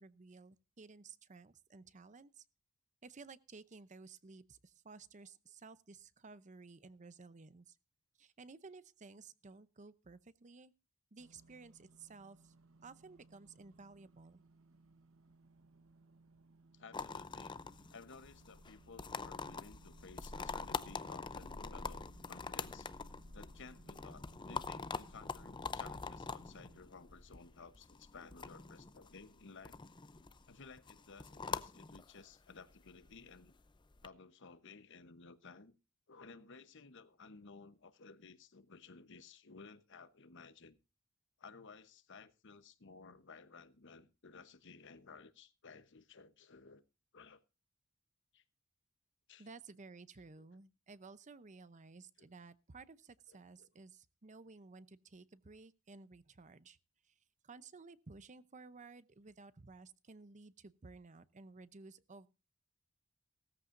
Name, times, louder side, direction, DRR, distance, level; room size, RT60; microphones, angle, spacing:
voice 1, 0.0-2.4 3.0-7.8 8.2-10.7 11.1-12.5 12.8-14.4 49.4-56.8 57.0-62.3, right 4 dB, 35° right, 0.7 m, -55 dB
sound 1, 11.2-26.8, right 3 dB, 75° right, 1.1 m, -65 dB
voice 2, 16.7-17.5 17.9-22.0 22.3-22.9 23.3-29.8 30.5-33.5 34.0-35.8 36.1-40.8 41.4-46.8 47.1-47.4 48.3-48.4 49.3-49.5 50.4-50.5 53.6-53.7, left 4 dB, 60° left, 1.0 m, -56 dB
sound 2, 16.9-34.1, left 4 dB, 20° left, 0.6 m, -45 dB
17.0 x 14.0 x 2.6 m
head